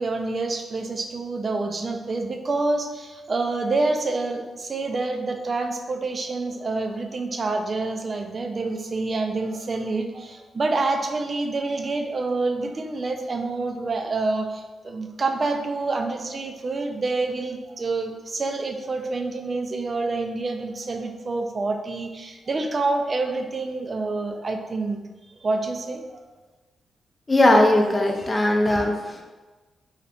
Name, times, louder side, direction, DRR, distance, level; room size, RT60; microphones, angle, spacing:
voice 1, 0.0-25.0 25.4-26.2, right 3 dB, 45° right, 5 dB, 0.4 m, -27 dB
voice 2, 27.3-29.2, left 1 dB, 30° left, 1 dB, 0.6 m, -19 dB
2.8 x 2.4 x 3.4 m, 1.2 s
supercardioid pair, 50°, 0 cm